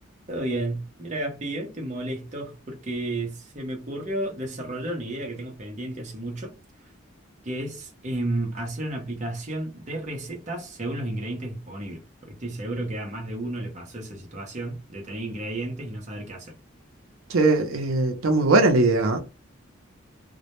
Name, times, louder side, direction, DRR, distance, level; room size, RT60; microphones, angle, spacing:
voice 1, 0.3-6.5 7.4-16.5, right 1 dB, 35° right, 0.6 m, -32 dB
voice 2, 17.3-19.2, right 2 dB, 80° right, 0.5 m, -20 dB
2.1 x 2.1 x 2.9 m
head